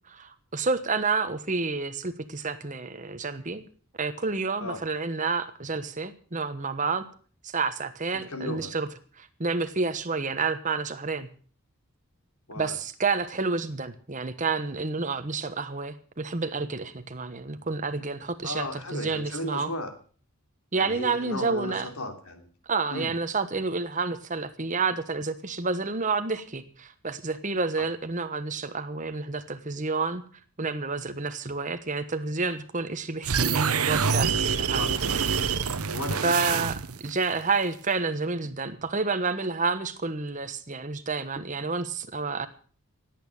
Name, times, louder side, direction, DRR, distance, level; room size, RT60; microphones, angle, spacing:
voice 1, 0.1-3.7 4.0-7.1 7.4-8.9 9.2-11.3 12.6-19.7 20.7-21.9 22.7-30.2 30.6-34.8 36.2-42.5, right 4 dB, 35° right, 10 dB, 1.2 m, -29 dB
voice 2, 8.3-8.7 12.5-12.8 18.4-19.9 20.8-22.5 22.9-23.1 34.8-35.2 35.9-36.5, left 1 dB, 80° left, 6 dB, 3.0 m, -35 dB
sound 1, 33.2-37.1, right 6 dB, 85° right, 0.9 m, -26 dB
17.0 x 8.8 x 7.2 m, 0.43 s
head